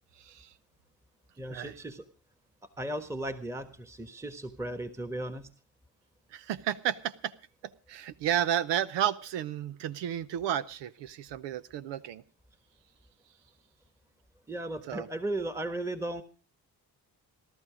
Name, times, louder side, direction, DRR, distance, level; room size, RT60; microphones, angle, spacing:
voice 1, 0.2-0.5 1.5-1.7 6.3-7.3 7.6-12.2 14.9-15.1, right 10 dB, 85° right, 14 dB, 0.8 m, -32 dB
voice 2, 1.4-2.0 2.8-5.5 14.5-16.2, right 1 dB, 5° right, 9 dB, 1.4 m, -36 dB
17.5 x 12.5 x 5.0 m, 0.38 s
supercardioid pair, 60°, 41 cm